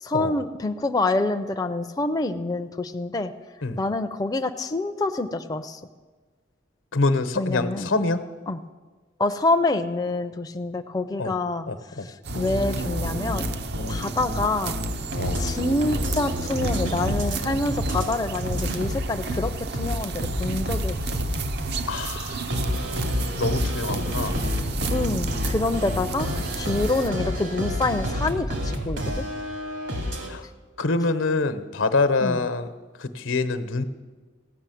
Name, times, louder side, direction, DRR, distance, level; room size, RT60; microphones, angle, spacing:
voice 1, 0.0-3.3 3.8-5.8 7.4-7.9 8.5-8.6 9.2-11.7 12.0-13.5 13.9-14.8 15.4-21.0 24.9-29.2 32.2-32.4, left 2 dB, 20° left, 7 dB, 0.4 m, -26 dB
voice 2, 6.9-8.2 11.2-11.3 11.7-12.1 13.8-14.0 15.2-15.5 21.9-22.7 23.3-24.4 30.3-30.4 30.8-32.7 33.0-33.8, left 3 dB, 85° left, 10 dB, 0.9 m, -25 dB
sound 1, 12.2-27.1, right 4 dB, 55° right, 0.6 m, -33 dB
sound 2, 12.3-18.1 18.3-21.8 22.5-30.3, equal, 75° right, 2.6 m, -28 dB
16.0 x 6.3 x 9.1 m, 1.4 s
head